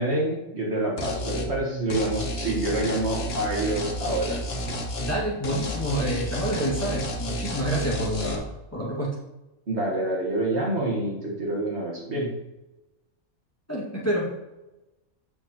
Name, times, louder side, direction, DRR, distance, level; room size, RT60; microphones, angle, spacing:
voice 1, 0.0-4.4 9.7-12.3, right 1 dB, 50° right, -2 dB, 1.6 m, -27 dB
sound 1, 1.0-1.5 1.9-5.2 5.4-8.4, equal, 50° left, 1.2 m, -31 dB
voice 2, 5.0-9.2 13.7-14.3, right 1 dB, 10° left, -5 dB, 1.6 m, -28 dB
7.5 x 6.4 x 2.9 m, 1.0 s
omnidirectional pair, 1.5 m